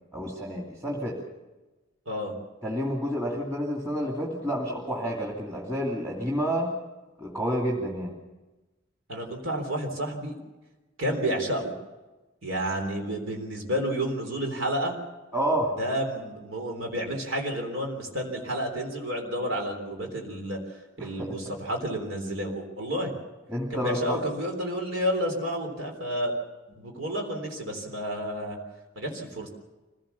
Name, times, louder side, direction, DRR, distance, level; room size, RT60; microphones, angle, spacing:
voice 1, 0.1-1.2 2.6-6.7 7.2-8.1 15.3-15.8 21.0-21.3 23.5-24.2, equal, 15° right, -3 dB, 2.5 m, -29 dB
voice 2, 9.1-10.4 11.0-11.7 12.4-15.0 15.8-23.1 23.7-26.3 26.7-28.6 29.0-29.5, equal, 85° right, 2 dB, 3.7 m, -30 dB
25.0 x 17.0 x 7.0 m, 1.2 s
head